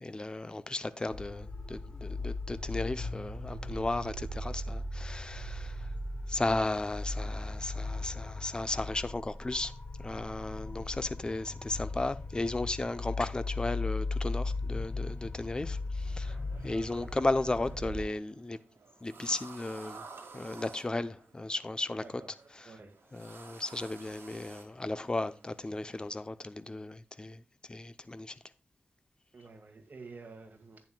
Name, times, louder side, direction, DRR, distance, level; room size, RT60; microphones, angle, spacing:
voice 1, 0.0-5.9 6.3-9.7 10.0-16.4 16.6-18.6 19.0-20.0 20.3-22.2 22.5-22.8 23.1-27.4 27.7-28.4, left 2 dB, 20° left, 0.6 m, -35 dB
sound 1, 1.1-18.0, left 2 dB, 45° left, 1.9 m, -38 dB
sound 2, 15.9-26.1, right 4 dB, 75° right, 1.9 m, -53 dB
voice 2, 22.0-22.3 22.6-22.9 23.4-23.6 29.3-30.8, right 4 dB, 50° right, 2.0 m, -50 dB
11.0 x 9.3 x 2.3 m
wide cardioid pair, 125°, 4 cm